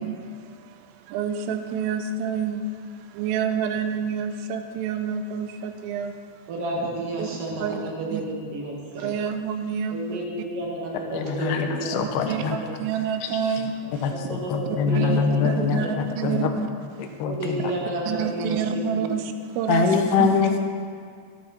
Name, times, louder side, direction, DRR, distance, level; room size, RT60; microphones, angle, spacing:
voice 1, 0.0-6.5 7.2-7.3 7.6-7.8 8.1-8.2 9.0-10.5 11.9-14.1 14.9-16.7 17.0-17.1 18.1-19.9 20.2-20.5, right 6 dB, 85° right, 7 dB, 3.4 m, -28 dB
voice 2, 6.5-9.1 9.9-12.2 12.6-12.7 14.1-15.4 15.7-15.9 17.3-19.1, right 2 dB, 55° right, -3 dB, 2.9 m, -31 dB
voice 3, 11.1-12.6 13.2-13.3 14.0-15.8 16.2-16.5 17.0-17.7 19.7-20.6, left 6 dB, 75° left, 4 dB, 2.5 m, -24 dB
14.0 x 11.5 x 4.3 m, 2.1 s
omnidirectional pair, 5.7 m